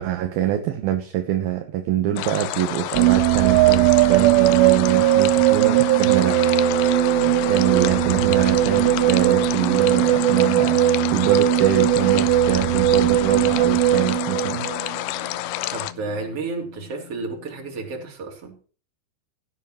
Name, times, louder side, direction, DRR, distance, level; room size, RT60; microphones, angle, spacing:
voice 1, 0.0-6.5 7.5-14.7, right 11 dB, 70° right, 2.4 m, -25 dB
sound 1, 2.2-15.9, left 14 dB, 85° left, 2.3 m, -29 dB
sound 2, 2.9-15.0, right 15 dB, 90° right, 3.1 m, -19 dB
sound 3, 6.3-18.1, left 9 dB, 65° left, 3.0 m, -36 dB
voice 2, 7.7-8.1 15.7-18.6, right 3 dB, 35° right, 3.6 m, -32 dB
16.5 x 10.5 x 3.1 m
omnidirectional pair, 5.4 m